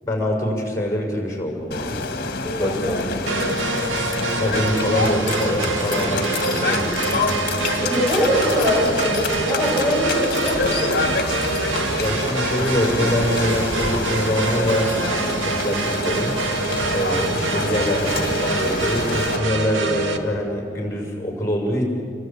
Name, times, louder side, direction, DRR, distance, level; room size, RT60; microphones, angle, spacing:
voice 1, 0.0-2.0 2.5-3.0 3.3-3.4 4.4-7.3 12.0-16.3 16.9-21.9, left 1 dB, 15° left, 1 dB, 6.1 m, -24 dB
sound 1, 1.7-19.4, left 3 dB, 50° left, 2.3 m, -27 dB
voice 2, 2.4-3.0 7.8-10.9, equal, 10° right, -8 dB, 7.1 m, -22 dB
sound 2, 3.3-20.2, right 3 dB, 85° right, 2.1 m, -25 dB
30.0 x 22.5 x 8.8 m, 2.4 s
head